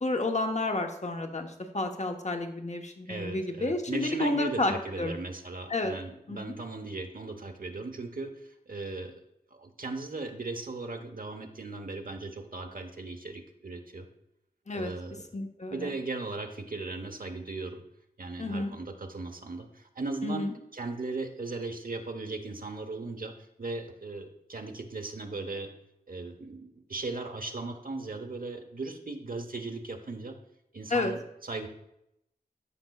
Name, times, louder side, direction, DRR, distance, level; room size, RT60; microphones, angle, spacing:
voice 1, 0.0-5.1 5.7-5.9 6.3-6.4 14.7-14.9 15.3-15.9 18.4-18.7 20.2-20.5 30.9-31.1, left 2 dB, 45° left, 4 dB, 1.1 m, -31 dB
voice 2, 3.1-9.1 9.5-14.1 14.7-15.2 15.7-17.8 18.2-23.3 23.6-25.7 26.1-30.3 30.7-31.7, right 3 dB, 60° right, 5 dB, 1.0 m, -37 dB
12.5 x 5.3 x 2.3 m, 0.81 s
cardioid pair, 40°, 17 cm